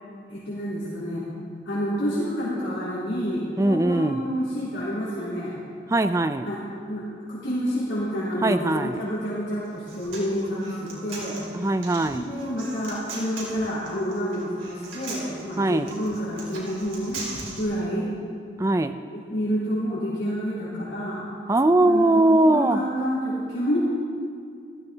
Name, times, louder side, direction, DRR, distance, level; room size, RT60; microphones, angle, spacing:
voice 1, 0.3-1.3 1.7-5.6 6.4-6.6 6.9-11.4 12.1-17.2 17.6-18.1 19.1-21.2 21.8-23.8, equal, 80° left, -10 dB, 3.6 m, -29 dB
voice 2, 3.6-4.2 5.9-6.5 8.4-9.0 11.5-12.3 15.6-15.9 18.6-19.0 21.5-22.8, right 2 dB, 15° right, 10 dB, 0.3 m, -21 dB
Human voice, 9.7-17.6, right 3 dB, 85° right, 3.1 m, -39 dB
14.5 x 13.0 x 3.9 m, 2.2 s
head